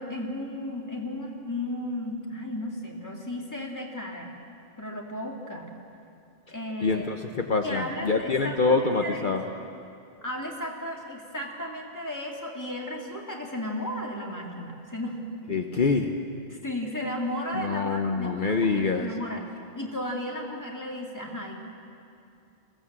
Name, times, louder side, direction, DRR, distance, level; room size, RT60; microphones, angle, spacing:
voice 1, 0.0-4.3 4.8-5.7 6.5-7.2 7.6-9.4 10.2-15.2 16.6-19.4 19.7-21.6, left 1 dB, 15° left, -1 dB, 2.5 m, -34 dB
voice 2, 6.8-9.4 15.5-16.1 17.5-19.1, left 4 dB, 50° left, 4 dB, 1.0 m, -25 dB
22.0 x 16.0 x 7.5 m, 2.6 s
omnidirectional pair, 1.1 m